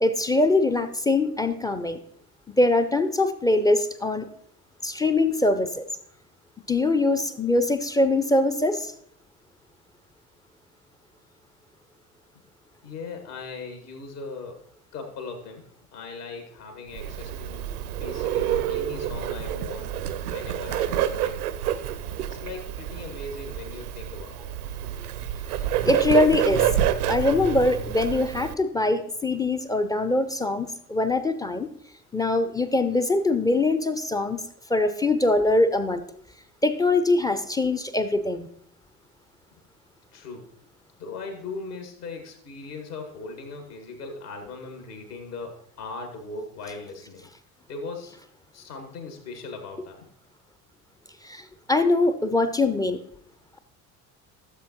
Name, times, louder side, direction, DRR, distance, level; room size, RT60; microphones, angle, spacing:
voice 1, 0.0-2.0 2.6-4.3 4.8-5.8 6.7-8.9 25.8-26.8 27.1-31.7 32.1-34.4 34.7-36.0 36.6-38.5 51.2-53.0, left 2 dB, 10° left, 8 dB, 0.4 m, -23 dB
voice 2, 12.8-14.6 14.9-15.6 15.9-19.9 20.2-21.4 22.2-24.5 40.1-40.5 41.0-47.3 47.7-48.2 48.5-50.1, left 3 dB, 75° left, 4 dB, 2.0 m, -39 dB
Bird, 16.9-28.5, right 11 dB, 70° right, 0.7 m, -28 dB
14.5 x 7.4 x 3.0 m, 0.66 s
figure-of-eight pair, 60°, 47 cm